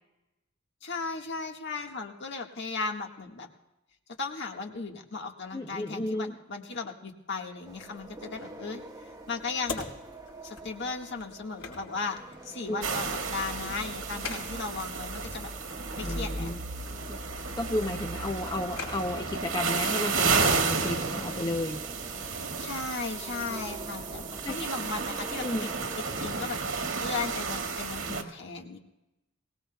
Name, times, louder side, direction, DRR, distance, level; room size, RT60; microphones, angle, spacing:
voice 1, 0.8-3.5 4.2-8.8 9.3-9.9 10.4-12.2 12.4-15.5 16.0-16.5 22.3-25.7 26.2-26.6 27.0-28.8, left 4 dB, 60° left, 3 dB, 1.6 m, -36 dB
voice 2, 5.5-6.3 12.7-12.8 16.0-16.6 17.1-17.2 17.6-21.8 24.4-24.6 25.4-25.7, left 1 dB, 20° left, 5 dB, 0.6 m, -33 dB
sound 1, 7.6-26.3, right 1 dB, 20° right, 1.4 m, -46 dB
sound 2, 8.0-25.6, left 4 dB, 80° left, 4.5 m, -48 dB
sound 3, 12.8-28.2, right 4 dB, 90° right, 1.9 m, -32 dB
22.0 x 18.5 x 2.3 m, 0.97 s
head